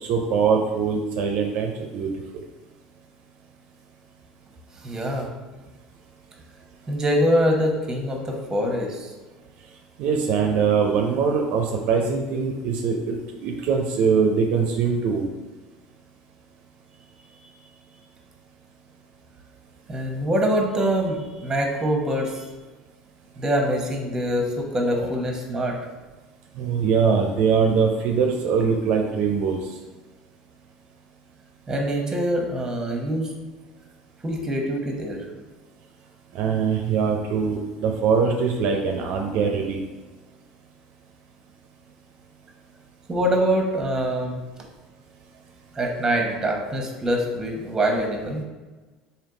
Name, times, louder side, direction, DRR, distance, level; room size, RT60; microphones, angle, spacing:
voice 1, 0.0-2.1 10.0-15.3 26.6-29.6 36.3-39.8, right 6 dB, 65° right, 2 dB, 0.4 m, -22 dB
voice 2, 4.8-5.3 6.9-9.1 17.4-17.5 19.9-22.5 23.4-25.8 31.7-33.3 34.2-35.2 43.1-44.4 45.7-48.4, equal, 20° right, 1 dB, 0.9 m, -24 dB
3.4 x 2.7 x 3.8 m, 1.2 s
supercardioid pair, 90°, 3 cm